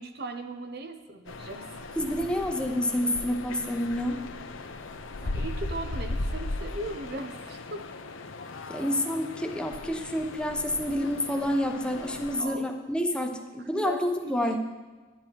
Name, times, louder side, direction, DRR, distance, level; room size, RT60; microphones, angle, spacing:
voice 1, 0.0-1.7 5.2-7.8 12.4-12.7 13.3-13.4 13.7-14.6, right 1 dB, 50° right, 7 dB, 0.8 m, -38 dB
sound 1, 1.3-12.4, left 2 dB, 75° left, 0.8 m, -37 dB
voice 2, 2.0-4.2 8.7-14.6, left 1 dB, 5° left, 3 dB, 0.8 m, -28 dB
11.5 x 10.0 x 4.6 m, 1.3 s
head